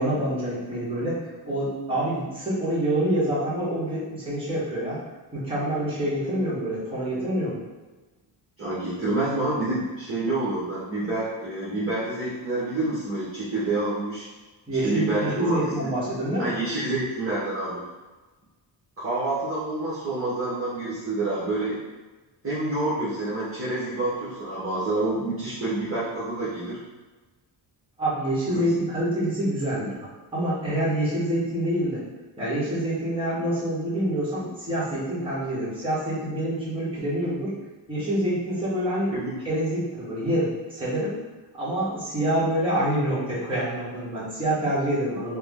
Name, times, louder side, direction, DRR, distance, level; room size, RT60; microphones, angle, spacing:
voice 1, 0.0-5.0 5.3-7.6 14.7-16.5 28.0-32.0 32.4-37.5 37.9-39.1 39.4-41.1 41.6-45.4, right 1 dB, 10° right, -10 dB, 1.2 m, -26 dB
voice 2, 8.6-14.2 14.8-15.9 16.4-17.8 19.0-21.8 22.4-26.8 28.5-28.7 39.1-39.4, right 2 dB, 30° right, -10 dB, 0.9 m, -28 dB
3.3 x 2.1 x 3.5 m, 1.2 s
wide cardioid pair, 165°, 45 cm